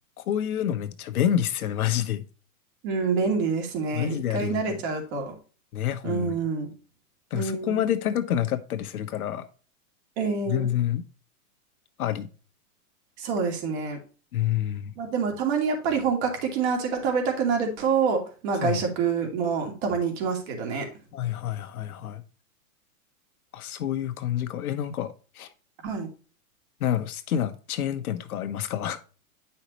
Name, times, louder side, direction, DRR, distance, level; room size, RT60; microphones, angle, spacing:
voice 1, 0.2-2.2 3.9-4.8 5.7-6.4 7.3-9.5 10.5-11.0 12.0-12.3 14.3-14.9 18.6-18.8 21.1-22.2 23.5-25.5 26.8-29.0, left 10 dB, 75° left, 1.4 m, -28 dB
voice 2, 2.8-5.3 6.0-6.7 7.3-7.8 10.2-10.7 13.2-14.0 15.0-20.9 25.8-26.1, right 5 dB, 45° right, 2.7 m, -27 dB
9.8 x 5.7 x 3.1 m
hypercardioid pair, 155°, 44 cm